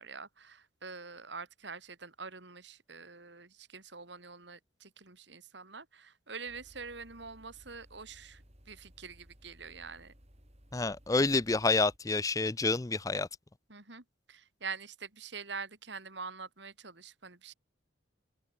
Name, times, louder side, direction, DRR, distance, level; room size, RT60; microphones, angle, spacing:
voice 1, 0.0-10.1 13.7-17.5, right 5 dB, 65° right, 2.8 m, -45 dB
sound 1, 6.5-12.0, equal, 35° right, 5.4 m, -59 dB
voice 2, 10.7-13.3, left 3 dB, 15° left, 0.5 m, -28 dB
head